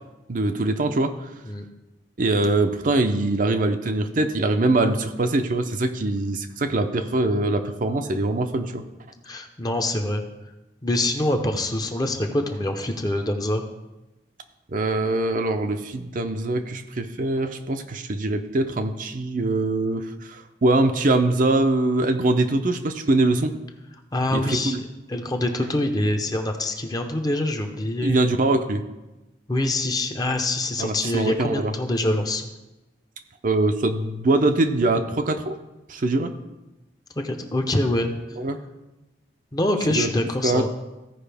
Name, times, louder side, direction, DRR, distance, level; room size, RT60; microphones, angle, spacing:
voice 1, 0.3-1.2 2.2-8.8 14.7-23.5 24.3-24.8 28.0-28.8 30.8-31.7 33.4-35.6 35.9-36.3 38.4-38.6 39.9-40.1 40.4-40.7, right 2 dB, 45° right, 7 dB, 0.6 m, -23 dB
voice 2, 9.2-10.2 10.8-13.6 24.1-24.8 25.1-28.2 29.5-32.5 37.2-38.1 39.5-40.7, left 1 dB, 20° left, 4 dB, 0.7 m, -25 dB
15.0 x 5.1 x 3.4 m, 1.0 s
head